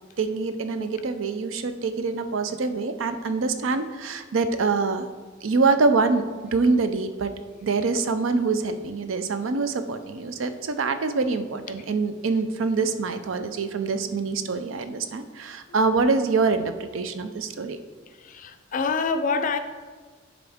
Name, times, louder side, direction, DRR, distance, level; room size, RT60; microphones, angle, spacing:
voice 1, 0.2-5.1 5.4-7.3 7.6-17.8, right 4 dB, 90° right, 0.5 m, -25 dB
voice 2, 18.1-19.6, left 4 dB, 45° left, 0.5 m, -27 dB
10.5 x 3.6 x 3.6 m
head